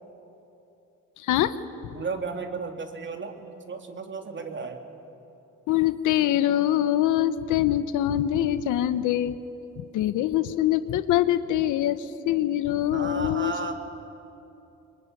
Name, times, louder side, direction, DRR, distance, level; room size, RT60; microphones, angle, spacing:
voice 1, 1.2-1.9 5.7-9.4 9.9-13.5, left 12 dB, 90° left, 12 dB, 0.9 m, -24 dB
voice 2, 1.9-4.8 12.9-13.7, right 4 dB, 40° right, 4 dB, 3.1 m, -34 dB
25.5 x 22.5 x 9.8 m, 2.9 s
cardioid pair, 90°, 30 cm